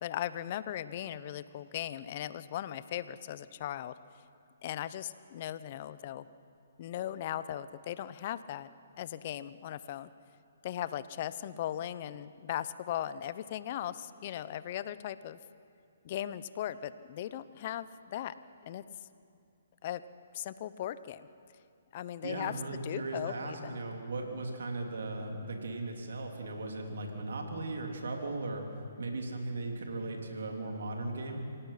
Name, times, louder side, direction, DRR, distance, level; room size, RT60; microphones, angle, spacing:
voice 1, 0.0-3.9 4.6-6.3 6.8-10.1 10.6-15.4 16.0-18.3 18.6-18.8 19.8-20.0 20.3-21.3 21.9-23.8, left 11 dB, 45° left, 15 dB, 0.7 m, -38 dB
voice 2, 22.2-28.6 29.0-31.4, right 2 dB, 75° right, 2 dB, 3.3 m, -37 dB
26.0 x 17.5 x 5.8 m, 2.4 s
hypercardioid pair, 145°, 0 cm